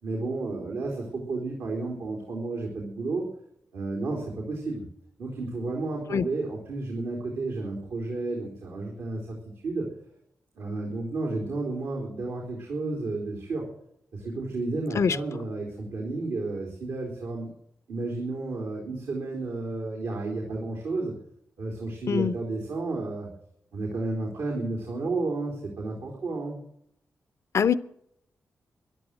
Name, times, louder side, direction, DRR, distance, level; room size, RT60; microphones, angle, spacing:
voice 1, 0.0-3.3 3.7-4.8 5.2-9.4 9.6-9.9 10.6-13.7 14.1-17.5 17.9-21.1 21.6-23.3 23.7-26.6, right 3 dB, 85° right, -1 dB, 3.6 m, -32 dB
voice 2, 6.1-6.2 15.0-15.2 22.1-22.3 27.5-27.8, left 7 dB, 70° left, 17 dB, 0.7 m, -23 dB
13.5 x 11.5 x 7.6 m, 0.74 s
cardioid pair, 55°, 5 cm